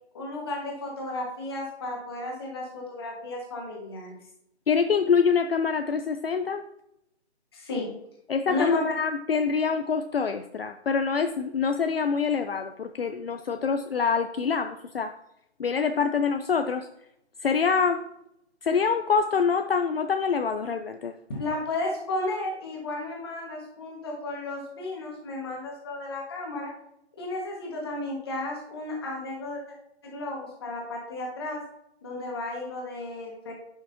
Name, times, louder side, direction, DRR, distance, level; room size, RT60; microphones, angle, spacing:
voice 1, 0.1-4.2 7.5-7.9 8.5-8.8 21.3-26.7 27.2-29.6 30.0-31.6 32.0-33.5, left 2 dB, 20° left, -2 dB, 1.5 m, -33 dB
voice 2, 4.7-6.6 8.3-15.1 15.6-16.9 17.4-18.0 18.6-21.2, left 5 dB, 60° left, 7 dB, 0.6 m, -25 dB
10.5 x 5.9 x 2.7 m, 0.78 s
hypercardioid pair, 170°, 34 cm